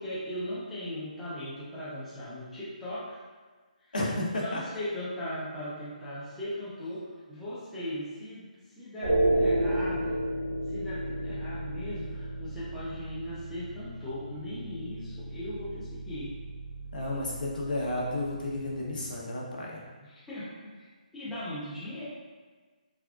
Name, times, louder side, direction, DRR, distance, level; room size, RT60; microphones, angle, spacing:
voice 1, 0.0-3.2 3.8-3.9 4.4-10.2 10.7-16.3 20.0-22.0, left 1 dB, 5° left, -13 dB, 0.4 m, -38 dB
voice 2, 3.9-4.6 16.9-19.8, left 1 dB, 80° left, -3 dB, 0.8 m, -32 dB
sound 1, 9.0-19.2, right 1 dB, 75° right, 1.0 m, -33 dB
3.5 x 2.3 x 2.3 m, 1.4 s
hypercardioid pair, 170°, 4 cm